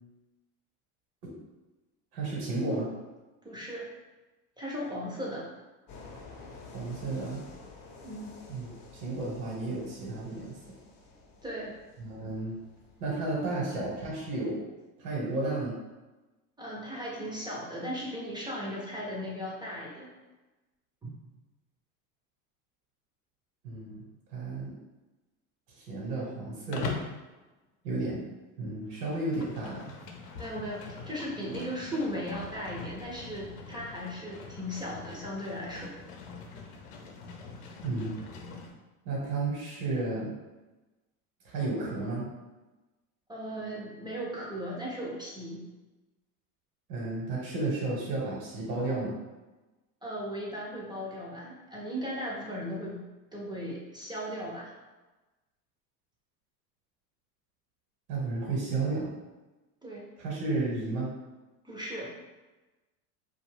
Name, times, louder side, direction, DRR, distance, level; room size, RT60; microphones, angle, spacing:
voice 1, 2.1-2.9 6.7-7.4 8.5-10.7 12.0-12.6 13.0-14.6 15.0-15.8 23.6-24.0 24.3-24.8 25.8-27.0 27.8-28.2 28.6-29.8 37.8-38.2 39.0-40.3 41.4-42.3 46.9-49.1 58.1-59.1 60.2-61.1, right 2 dB, 75° right, -4 dB, 1.0 m, -32 dB
voice 2, 3.4-3.9 4.6-5.5 8.0-8.4 11.4-11.7 16.6-20.1 21.0-21.1 30.3-35.9 43.3-45.6 50.0-53.0 53.3-54.7 59.8-60.1 61.6-62.1, equal, 10° right, -4 dB, 0.3 m, -37 dB
sound 1, 5.9-14.3, left 3 dB, 45° left, 0.7 m, -51 dB
Livestock farm animals working animals, 26.7-27.2 28.9-38.7, left 4 dB, 80° left, 0.7 m, -42 dB
2.5 x 2.2 x 3.2 m, 1.1 s
hypercardioid pair, 100°, 45 cm